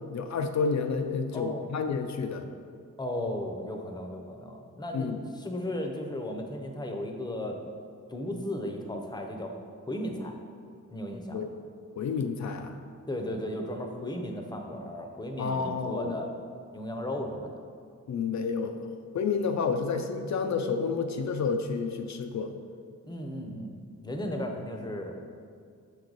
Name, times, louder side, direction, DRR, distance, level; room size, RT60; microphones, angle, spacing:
voice 1, 0.1-2.4 4.9-5.2 11.3-11.5 12.0-12.7 15.4-16.1 18.1-18.8 19.1-22.5, left 5 dB, 60° left, 6 dB, 0.5 m, -30 dB
voice 2, 1.3-1.7 3.0-7.6 8.1-9.5 9.9-10.3 10.9-11.5 13.1-16.3 16.7-17.6 23.0-25.2, left 1 dB, 15° left, 3 dB, 0.7 m, -35 dB
6.6 x 4.8 x 3.9 m, 2.2 s
wide cardioid pair, 105°, 32 cm